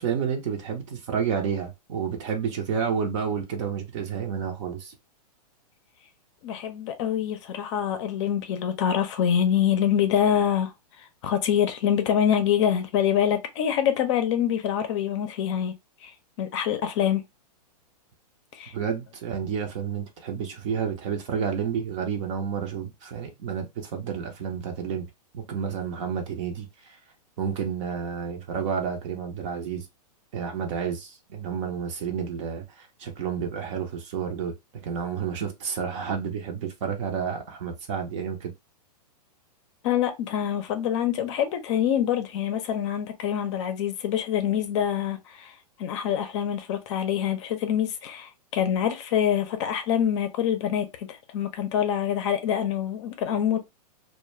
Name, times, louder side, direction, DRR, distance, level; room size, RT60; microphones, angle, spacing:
voice 1, 0.0-5.0 18.7-25.1 25.3-27.0 27.4-29.9 30.3-38.5, right 7 dB, 50° right, 0.6 m, -30 dB
voice 2, 6.4-15.7 16.0-16.1 16.4-17.2 18.5-18.7 39.8-45.5 45.8-53.6, left 9 dB, 45° left, 0.5 m, -25 dB
2.2 x 2.1 x 3.0 m
hypercardioid pair, 135°, 21 cm